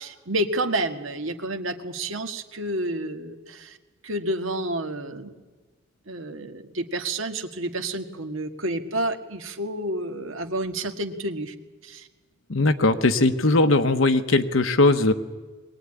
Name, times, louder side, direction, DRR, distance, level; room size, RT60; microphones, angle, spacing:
voice 1, 0.0-3.8 4.0-5.4 6.1-11.5 11.8-12.1, right 1 dB, 90° right, 5 dB, 1.8 m, -29 dB
voice 2, 12.5-15.1, left 2 dB, 80° left, 7 dB, 1.2 m, -19 dB
22.0 x 19.0 x 9.9 m, 1.3 s
head